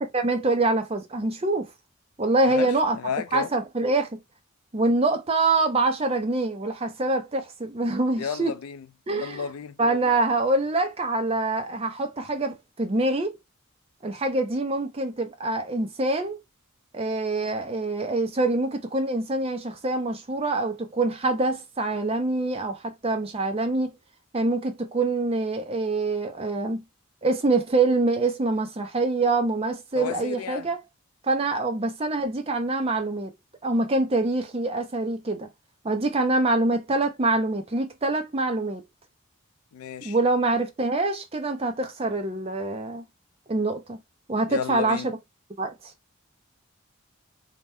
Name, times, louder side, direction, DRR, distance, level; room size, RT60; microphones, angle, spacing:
voice 1, 0.0-1.7 2.2-3.0 3.3-4.1 4.7-8.5 9.1-9.5 9.8-13.3 14.0-16.4 16.9-23.9 24.3-26.8 27.2-30.8 31.2-33.3 33.6-35.5 35.8-38.8 40.0-43.0 43.5-44.0 44.3-45.0 45.6-45.7, right 2 dB, 25° right, 0.5 m, -25 dB
voice 2, 2.5-3.5 8.2-9.8 29.9-30.7 39.7-40.2 44.5-45.1, left 7 dB, 80° left, 0.4 m, -33 dB
2.9 x 2.1 x 3.4 m
head